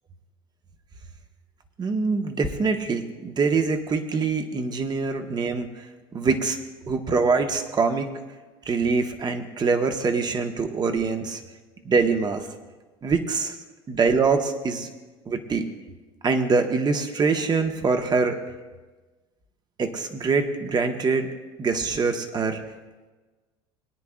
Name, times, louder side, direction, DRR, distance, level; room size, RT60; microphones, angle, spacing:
voice 1, 1.8-5.7 6.1-6.6 6.9-8.1 8.6-11.4 11.8-12.4 13.0-13.6 13.9-14.9 15.3-15.7 16.2-18.4 19.8-21.3 21.6-22.6, right 4 dB, 30° right, 6 dB, 1.3 m, -24 dB
23.0 x 9.6 x 2.5 m, 1.2 s
hypercardioid pair, 85°, 14 cm